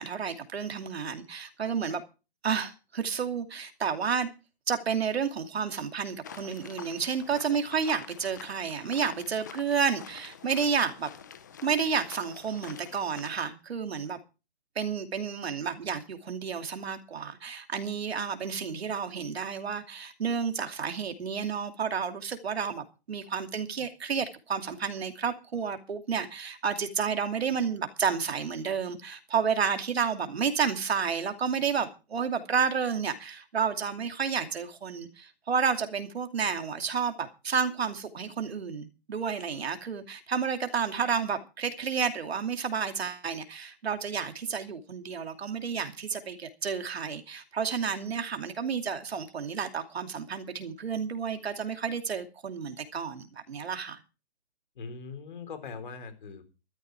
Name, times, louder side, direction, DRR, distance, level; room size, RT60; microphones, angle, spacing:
voice 1, 0.0-2.0 2.4-4.3 4.7-11.1 11.6-14.2 14.8-54.0, right 6 dB, 65° right, 2.7 m, -31 dB
sound 1, 6.2-13.4, left 8 dB, 15° left, 0.7 m, -47 dB
voice 2, 54.8-56.5, left 5 dB, 45° left, 4.0 m, -41 dB
14.0 x 13.5 x 4.7 m
hypercardioid pair, 170°, 33 cm